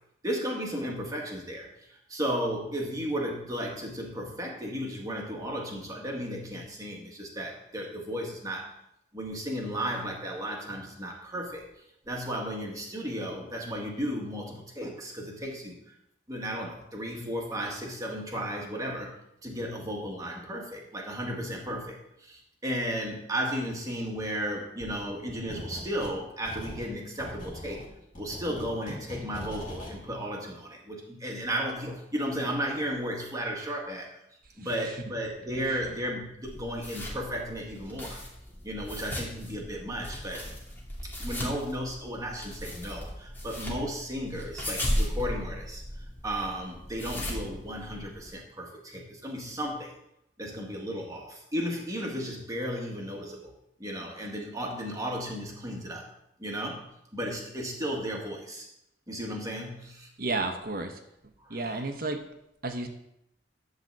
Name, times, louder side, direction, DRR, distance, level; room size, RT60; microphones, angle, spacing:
voice 1, 0.2-1.7 2.1-8.7 9.1-11.7 12.1-15.8 16.3-19.1 19.4-27.8 28.2-34.1 34.6-38.2 38.6-40.4 41.2-45.8 46.2-49.9 50.4-53.5 53.8-56.1 56.4-58.7 59.1-60.1 61.4-61.8, equal, 20° right, -1 dB, 2.0 m, -34 dB
sound 1, 25.5-26.2 26.4-30.0, left 1 dB, 45° left, 2.9 m, -41 dB
sound 2, 36.4-48.4, equal, 10° left, 2.4 m, -36 dB
voice 2, 60.2-60.9 61.5-62.2 62.6-62.9, right 2 dB, 55° right, 6 dB, 1.1 m, -31 dB
12.0 x 4.0 x 7.6 m, 0.80 s
head